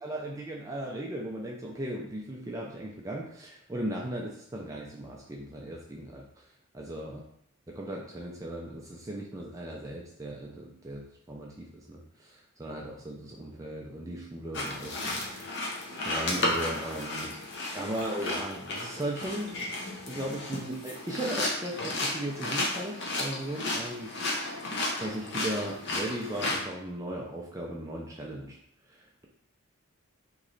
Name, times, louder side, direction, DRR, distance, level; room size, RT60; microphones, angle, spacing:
voice 1, 0.0-6.4 6.7-7.2 7.7-17.3 17.7-19.6 20.1-24.1 25.0-28.6 28.9-29.2, right 1 dB, 15° right, -2 dB, 0.3 m, -37 dB
sound 1, 14.5-26.6, left 2 dB, 50° left, 0.7 m, -33 dB
3.1 x 3.0 x 3.8 m, 0.72 s
head